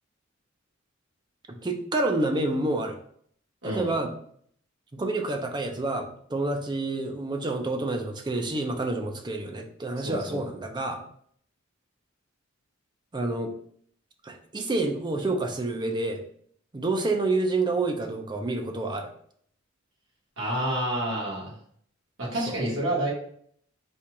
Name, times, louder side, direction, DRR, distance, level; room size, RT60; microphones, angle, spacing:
voice 1, 1.5-3.0 3.6-4.1 4.9-11.0 13.1-13.5 14.2-16.2 16.7-19.1 22.5-22.6, right 2 dB, 20° right, 4 dB, 0.5 m, -28 dB
voice 2, 3.6-3.9 10.0-10.4 20.4-21.5 22.2-23.1, right 1 dB, 65° right, -5 dB, 1.6 m, -29 dB
4.3 x 2.4 x 4.6 m, 0.63 s
head